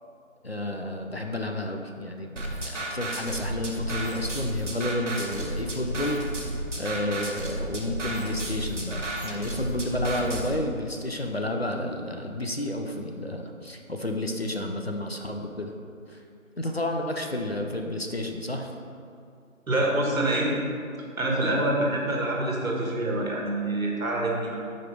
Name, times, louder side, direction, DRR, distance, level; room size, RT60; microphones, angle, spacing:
voice 1, 0.4-6.2 6.8-15.7 16.1-16.2 16.6-18.8, left 1 dB, 50° left, 3 dB, 0.4 m, -31 dB
sound 1, 2.4-10.6, right 1 dB, 60° right, 1.0 m, -33 dB
voice 2, 19.7-20.5 21.2-24.6, right 1 dB, 75° right, -1 dB, 1.5 m, -26 dB
5.3 x 5.0 x 4.5 m, 2.4 s
figure-of-eight pair, 175°, 41 cm